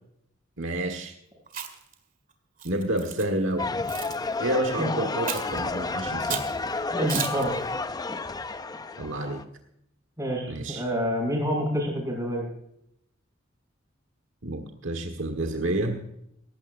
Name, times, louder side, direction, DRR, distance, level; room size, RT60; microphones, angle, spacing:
voice 1, 0.6-1.2 2.6-3.8 4.4-6.4 9.0-9.4 10.5-10.8 14.4-16.0, right 1 dB, 70° right, 5 dB, 1.6 m, -29 dB
Chewing mastication, 1.5-1.9 2.6-3.2 3.9-4.2 5.2-5.6 6.3-6.5 7.1-7.4, right 8 dB, 45° right, 1.9 m, -33 dB
sound 1, 3.6-9.4, left 3 dB, 20° left, 0.6 m, -31 dB
voice 2, 6.9-7.5 10.2-12.5, equal, 15° right, -1 dB, 6.6 m, -27 dB
18.0 x 15.5 x 2.6 m, 0.75 s
head